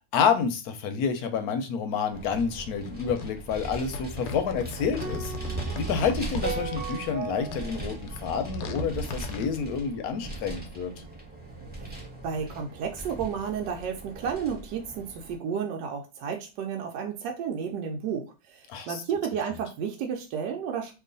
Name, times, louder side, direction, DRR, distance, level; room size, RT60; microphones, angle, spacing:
voice 1, 0.1-5.3 5.8-10.9 18.7-19.0, left 6 dB, 70° left, 7 dB, 1.0 m, -28 dB
Vehicle, 2.1-15.3, right 3 dB, 15° right, 0.4 m, -39 dB
sound 1, 2.9-7.0 7.4-9.5, left 4 dB, 90° left, 1.3 m, -39 dB
sound 2, 5.0-9.3, right 5 dB, 65° right, 0.8 m, -38 dB
voice 2, 12.2-18.3 18.5-20.9, right 7 dB, 80° right, 2 dB, 1.2 m, -32 dB
3.0 x 2.4 x 3.8 m, 0.29 s
omnidirectional pair, 1.9 m